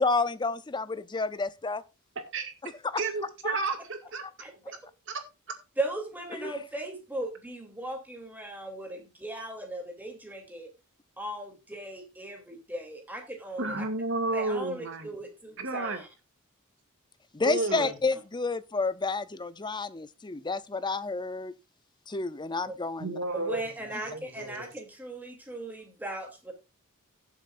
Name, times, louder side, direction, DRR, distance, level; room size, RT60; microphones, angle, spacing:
voice 1, 0.0-1.8 2.6-3.0 3.4-3.7 6.4-6.6 17.3-21.5 22.1-23.2, left 3 dB, 20° left, 0.6 m, -30 dB
voice 2, 2.2-2.5 3.0-4.2 13.6-15.2 15.6-16.0 17.4-18.0 23.0-24.7, right 3 dB, 60° right, 2.2 m, -32 dB
voice 3, 5.8-10.7 11.2-13.7 14.3-16.1 17.7-17.9 22.7-22.8 23.3-26.5, right 1 dB, 10° right, 3.0 m, -38 dB
17.5 x 7.5 x 2.5 m
head